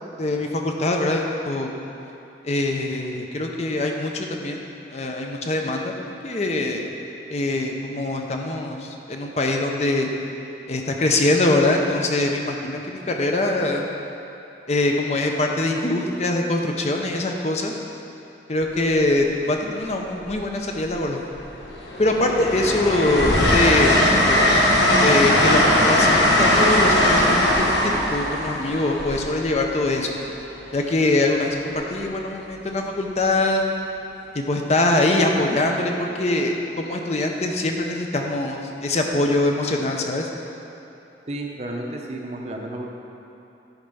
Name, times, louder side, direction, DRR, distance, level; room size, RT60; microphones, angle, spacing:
voice 1, 0.2-1.7 2.4-6.9 7.3-10.1 10.7-13.8 14.7-17.7 18.5-21.2 22.0-24.0 24.2-24.5 25.0-30.2 30.7-33.6 34.3-40.3, left 2 dB, 40° left, 2 dB, 0.6 m, -23 dB
Train, 18.8-18.9 20.2-21.0 21.4-30.1 31.7-32.0, left 1 dB, 80° left, 1.3 m, -19 dB
voice 2, 41.3-42.9, right 1 dB, 35° right, 0 dB, 0.8 m, -32 dB
10.5 x 4.5 x 5.4 m, 2.8 s
head